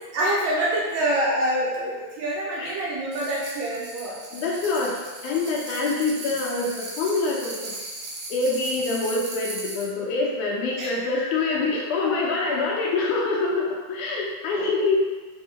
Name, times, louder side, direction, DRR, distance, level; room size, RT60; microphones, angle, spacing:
voice 1, 0.1-4.2 10.8-11.0, right 1 dB, 75° right, -5 dB, 1.8 m, -26 dB
sound 1, 3.1-9.9, right 2 dB, 90° right, 2.5 m, -37 dB
voice 2, 4.3-7.7 8.3-15.0, left 3 dB, 80° left, -2 dB, 1.9 m, -25 dB
5.5 x 2.7 x 2.7 m, 1.3 s
omnidirectional pair, 3.6 m